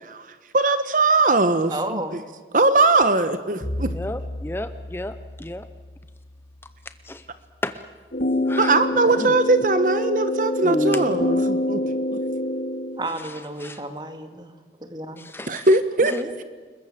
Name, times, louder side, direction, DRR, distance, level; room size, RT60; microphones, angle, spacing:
voice 1, 0.5-2.0 2.5-3.9 8.6-11.8 15.5-16.1, right 3 dB, 50° right, 11 dB, 1.1 m, -20 dB
voice 2, 1.7-2.2 13.0-14.5 14.8-15.3 16.0-16.4, right 1 dB, 25° right, 7 dB, 2.0 m, -32 dB
Bowed string instrument, 3.6-7.8, left 1 dB, 35° left, 1.8 m, -36 dB
voice 3, 3.9-5.7 7.0-7.2 7.6-7.8 8.5-8.8 9.1-9.3 10.6-11.3 11.6-12.2 13.2-13.3 13.6-13.8 15.2-15.7 16.1-16.2, left 1 dB, 15° left, 11 dB, 0.7 m, -31 dB
sound 1, 8.1-13.1, left 1 dB, 55° left, 2.4 m, -25 dB
29.5 x 21.0 x 7.4 m, 1.4 s
head